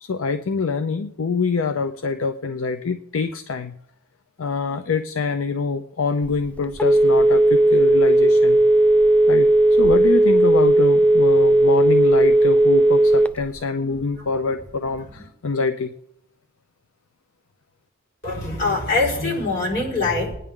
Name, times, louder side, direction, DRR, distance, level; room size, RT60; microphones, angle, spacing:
voice 1, 0.0-3.7 4.4-8.6 9.3-9.5 9.8-15.9, left 4 dB, 80° left, 10 dB, 0.6 m, -25 dB
Telephone, 6.2-13.6, right 1 dB, 5° left, 0.4 m, -15 dB
voice 2, 18.2-20.3, left 3 dB, 60° left, -2 dB, 4.7 m, -23 dB
19.5 x 9.9 x 3.7 m, 0.77 s
head